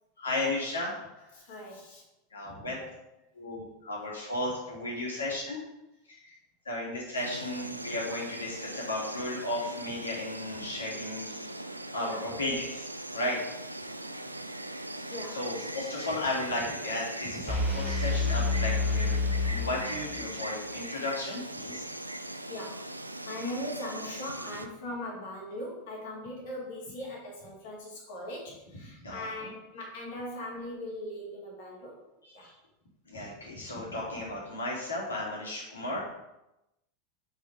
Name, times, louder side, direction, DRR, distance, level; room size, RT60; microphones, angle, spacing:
voice 1, 0.2-1.0 2.3-2.8 3.3-5.6 6.2-6.4 6.7-11.6 11.9-12.9 13.1-13.4 15.1-21.8 28.7-29.5 32.2-32.5 33.1-36.0, left 1 dB, 75° left, -4 dB, 2.3 m, -34 dB
voice 2, 1.3-2.0 2.8-2.9 8.0-8.1 12.0-12.2 15.1-15.4 22.5-22.8 23.2-32.0 32.3-32.5, left 1 dB, 55° left, -3 dB, 2.2 m, -40 dB
Insect, 7.1-24.7, right 1 dB, 90° right, 0.3 m, -40 dB
sound 1, 17.5-20.4, left 3 dB, 10° right, 1.2 m, -28 dB
5.0 x 4.9 x 5.1 m, 0.92 s
figure-of-eight pair, 85°, 0 cm